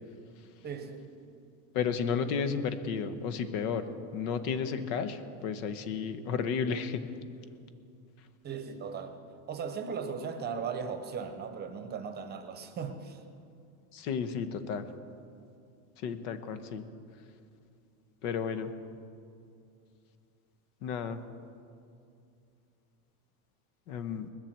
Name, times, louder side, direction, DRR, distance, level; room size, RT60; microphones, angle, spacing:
voice 1, 0.6-1.1 8.4-9.2 9.5-13.2, right 6 dB, 20° right, 7 dB, 0.8 m, -37 dB
voice 2, 1.7-3.9 4.1-7.0 13.9-14.8 16.0-16.8 18.2-18.7 20.8-21.2 23.9-24.3, left 6 dB, 75° left, 10 dB, 1.2 m, -32 dB
20.5 x 7.5 x 7.5 m, 2.5 s
cardioid pair, 160°, 44 cm